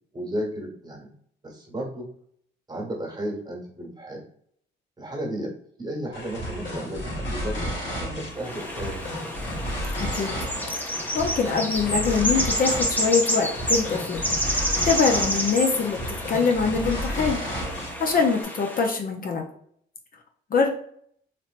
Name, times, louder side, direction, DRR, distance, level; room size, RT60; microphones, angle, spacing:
voice 1, 0.1-1.1 1.4-2.1 2.7-4.2 5.0-5.5 5.8-9.0, equal, 20° right, -1 dB, 1.2 m, -33 dB
sound 1, 6.1-18.4, equal, 65° left, 1.3 m, -32 dB
sound 2, 8.3-18.9, equal, 10° left, 0.8 m, -29 dB
voice 2, 10.0-10.3 10.7-14.2 14.8-17.4 18.0-19.5 20.5-20.7, left 5 dB, 45° left, 2 dB, 0.6 m, -24 dB
3.3 x 2.9 x 2.4 m, 0.65 s
cardioid pair, 90°, 20 cm